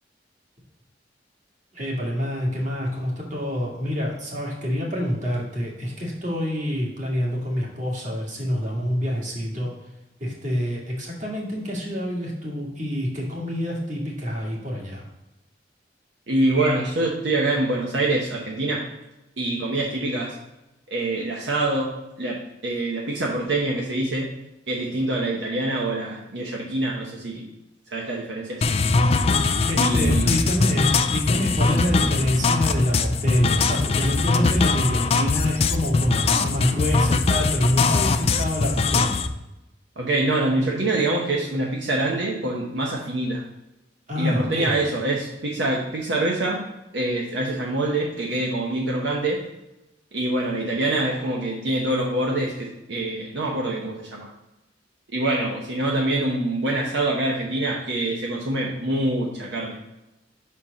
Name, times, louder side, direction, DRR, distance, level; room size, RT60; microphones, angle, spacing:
voice 1, 1.7-9.7 10.2-15.0 29.7-39.3 44.1-44.8, equal, 45° right, -2 dB, 1.8 m, -26 dB
voice 2, 16.3-18.8 19.4-20.3 20.9-21.9 22.2-24.3 24.7-27.5 27.9-28.6 29.8-30.3 40.0-43.4 44.2-46.7 46.9-49.4 50.1-54.3 55.1-59.8, right 2 dB, 75° right, -3 dB, 1.0 m, -25 dB
sound 1, 28.6-39.3, left 3 dB, 35° left, 0.4 m, -21 dB
5.7 x 4.4 x 5.1 m, 0.97 s
head